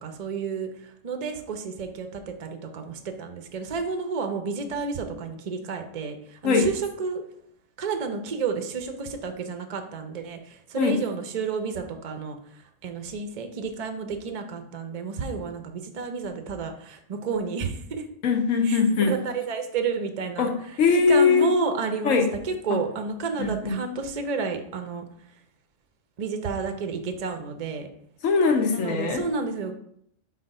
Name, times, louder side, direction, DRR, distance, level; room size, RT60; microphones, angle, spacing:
voice 1, 0.0-7.2 7.8-18.1 18.6-18.8 19.1-25.0 26.2-27.9 28.7-29.7, right 4 dB, 50° right, 6 dB, 0.5 m, -31 dB
voice 2, 18.2-19.1 20.4-20.5 20.8-21.5 22.0-22.2 23.4-23.7 28.2-29.2, left 5 dB, 75° left, 4 dB, 1.2 m, -21 dB
4.2 x 4.2 x 5.3 m, 0.70 s
omnidirectional pair, 1.4 m